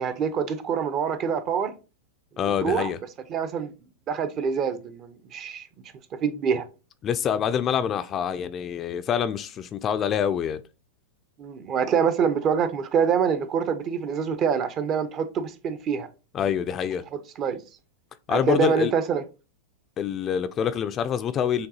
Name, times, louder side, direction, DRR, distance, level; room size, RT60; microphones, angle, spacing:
voice 1, 0.0-1.7 2.4-2.9 3.3-3.7 4.1-5.7 6.2-6.6 11.4-16.1 17.4-17.6 18.3-19.2, right 6 dB, 35° right, 0.6 m, -25 dB
voice 2, 2.4-3.0 7.0-10.6 16.3-17.0 18.3-18.9 20.0-21.7, left 8 dB, 30° left, 0.3 m, -26 dB
6.4 x 2.3 x 2.7 m
hypercardioid pair, 120°, 0 cm